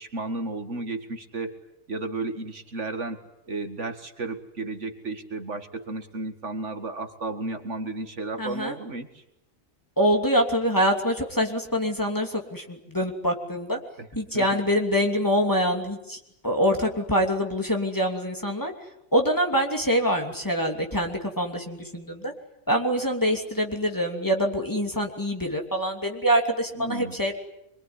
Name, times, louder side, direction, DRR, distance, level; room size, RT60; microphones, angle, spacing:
voice 1, 0.0-1.5 1.9-3.2 3.5-9.1 14.0-14.1 14.3-14.6 26.8-27.2, right 2 dB, 60° right, 7 dB, 2.2 m, -33 dB
voice 2, 8.4-8.7 10.0-13.8 14.1-16.2 16.4-18.7 19.1-22.3 22.7-27.3, equal, 15° left, 2 dB, 3.0 m, -25 dB
25.0 x 22.5 x 9.8 m, 0.82 s
omnidirectional pair, 1.4 m